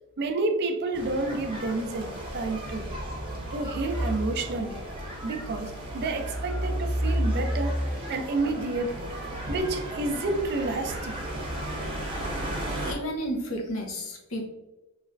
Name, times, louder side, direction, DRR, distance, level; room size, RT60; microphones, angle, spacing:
voice 1, 0.2-2.9 3.5-4.8 5.2-9.1 9.5-11.2, right 2 dB, 50° right, 6 dB, 0.4 m, -30 dB
sound 1, 0.9-12.9, right 1 dB, 25° right, 0.8 m, -32 dB
voice 2, 12.8-14.5, equal, 70° left, 1 dB, 0.8 m, -32 dB
3.2 x 3.0 x 2.5 m, 1.1 s
head